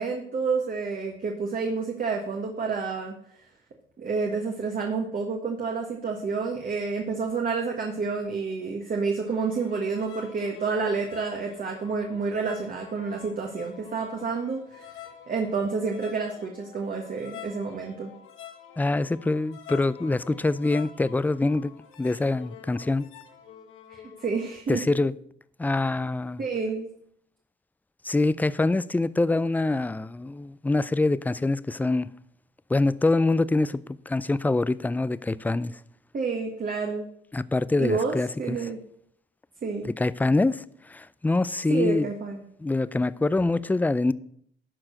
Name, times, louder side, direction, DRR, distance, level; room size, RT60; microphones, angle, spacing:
voice 1, 0.0-3.1 4.0-14.9 15.3-18.1 23.9-24.8 26.4-26.9 36.1-37.1 37.8-38.8 39.6-39.9 41.7-42.4, right 4 dB, 45° right, 1.5 m, -29 dB
sound 1, 9.2-24.6, left 9 dB, 90° left, 1.2 m, -46 dB
voice 2, 18.8-21.7 22.0-23.1 24.7-25.1 25.6-26.4 28.0-32.1 32.7-33.8 34.1-35.8 37.3-38.6 39.8-42.1 42.6-44.1, left 2 dB, 10° left, 0.3 m, -25 dB
12.0 x 4.7 x 6.5 m
cardioid pair, 90°, 20 cm